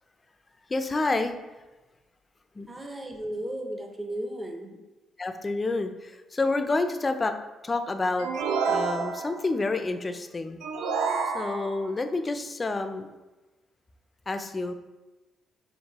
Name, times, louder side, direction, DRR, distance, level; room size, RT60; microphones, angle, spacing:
voice 1, 0.7-1.3 2.6-2.7 5.2-7.3 7.6-8.3 8.7-10.6 11.3-13.1 14.3-14.7, left 3 dB, 25° left, 8 dB, 0.3 m, -28 dB
voice 2, 2.7-4.7, right 1 dB, 20° right, 2 dB, 0.6 m, -35 dB
sound 1, 8.2-9.5 10.6-11.9, right 5 dB, 90° right, 0.3 m, -29 dB
4.4 x 2.6 x 2.9 m, 1.1 s
cardioid pair, 90°, 0 cm